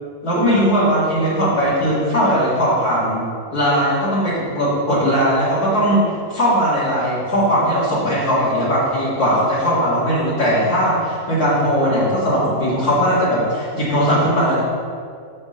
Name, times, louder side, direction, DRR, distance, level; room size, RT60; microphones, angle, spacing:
voice 1, 0.2-3.2 3.5-14.6, equal, 75° left, -11 dB, 2.9 m, -18 dB
6.6 x 5.5 x 6.6 m, 2.2 s
omnidirectional pair, 1.6 m